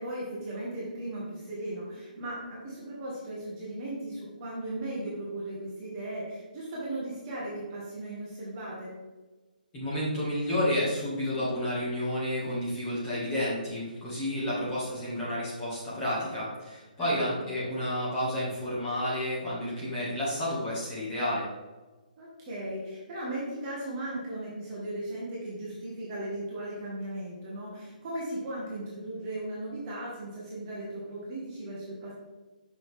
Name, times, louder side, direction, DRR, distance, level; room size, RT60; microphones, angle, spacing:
voice 1, 0.0-8.9 16.9-17.5 22.2-32.1, right 1 dB, 25° right, -6 dB, 1.4 m, -37 dB
voice 2, 9.7-21.5, left 1 dB, 15° left, -9 dB, 2.1 m, -30 dB
5.8 x 5.3 x 3.7 m, 1.2 s
hypercardioid pair, 165°, 5 cm